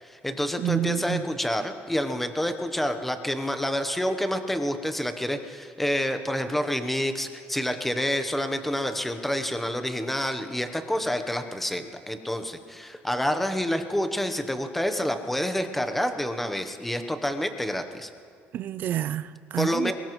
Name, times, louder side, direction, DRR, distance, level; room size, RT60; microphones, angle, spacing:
voice 1, 0.0-18.1 19.6-19.9, equal, 5° left, 8 dB, 0.9 m, -28 dB
voice 2, 0.6-1.2 18.5-19.9, right 12 dB, 45° right, 15 dB, 0.4 m, -28 dB
22.5 x 20.0 x 3.1 m, 2.1 s
cardioid pair, 150°, 4 cm